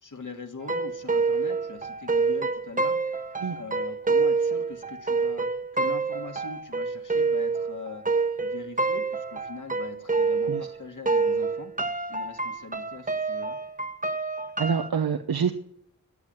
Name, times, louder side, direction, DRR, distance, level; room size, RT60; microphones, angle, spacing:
voice 1, 0.0-5.5 5.7-8.0 8.4-11.7 12.1-13.6, left 4 dB, 60° left, 4 dB, 2.0 m, -42 dB
sound 1, 0.6-10.8 11.1-14.9, right 4 dB, 25° right, 1.0 m, -27 dB
voice 2, 14.6-15.5, right 6 dB, 90° right, 7 dB, 0.9 m, -26 dB
13.0 x 9.4 x 9.2 m, 0.74 s
wide cardioid pair, 60°, 35 cm